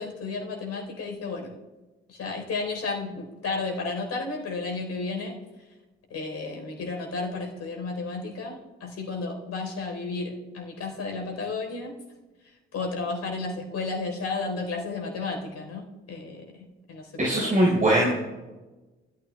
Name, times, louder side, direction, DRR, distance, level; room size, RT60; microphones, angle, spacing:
voice 1, 0.0-1.5 2.1-5.4 6.1-11.9 12.7-17.6, left 3 dB, 55° left, 1 dB, 4.2 m, -33 dB
voice 2, 17.2-18.1, right 1 dB, 25° right, -2 dB, 4.6 m, -21 dB
23.5 x 14.0 x 2.4 m, 1.1 s
figure-of-eight pair, 40°, 32 cm